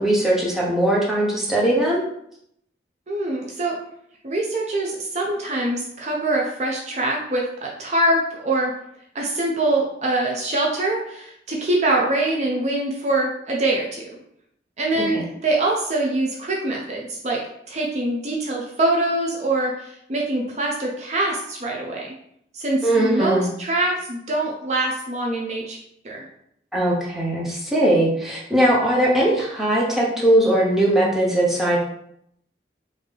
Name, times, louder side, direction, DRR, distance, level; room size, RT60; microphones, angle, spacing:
voice 1, 0.0-2.0 15.1-15.2 22.8-23.5 26.7-31.8, right 1 dB, ahead, -5 dB, 0.7 m, -20 dB
voice 2, 3.1-3.8 4.2-8.7 9.1-14.0 14.8-17.4 17.7-22.0 22.5-25.8 26.0-26.2, right 2 dB, 40° right, -2 dB, 0.5 m, -24 dB
3.7 x 2.7 x 3.2 m, 0.72 s
head